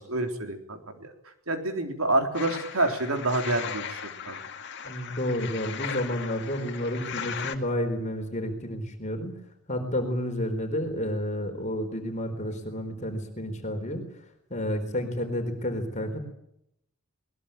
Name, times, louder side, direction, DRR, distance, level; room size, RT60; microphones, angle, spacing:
voice 1, 0.0-4.4, right 2 dB, 70° right, 5 dB, 3.9 m, -28 dB
sound 1, 2.3-7.6, left 7 dB, 50° left, 2.2 m, -37 dB
voice 2, 4.8-9.3 9.7-14.0 14.5-16.2, left 1 dB, 35° left, 5 dB, 4.2 m, -30 dB
21.5 x 21.0 x 9.1 m, 0.77 s
head